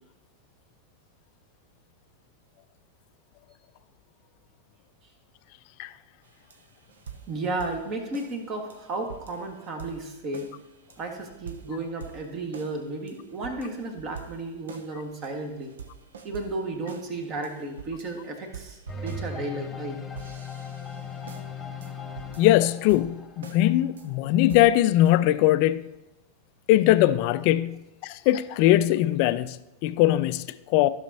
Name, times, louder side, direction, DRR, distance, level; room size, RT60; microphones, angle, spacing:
sound 1, 6.2-19.8 20.2-21.5 21.8-21.9 22.2-22.6 22.9-23.6 24.0-24.1 24.5-25.1, right 6 dB, 65° right, 0.7 m, -45 dB
voice 1, 7.3-10.6 11.0-15.8 16.2-20.0, right 2 dB, 35° right, 1.5 m, -33 dB
sound 2, 18.9-24.6, left 4 dB, 10° left, 1.3 m, -39 dB
voice 2, 22.4-25.9 26.7-30.9, left 14 dB, 45° left, 0.4 m, -21 dB
14.5 x 6.3 x 2.8 m
figure-of-eight pair, 90°, 0 cm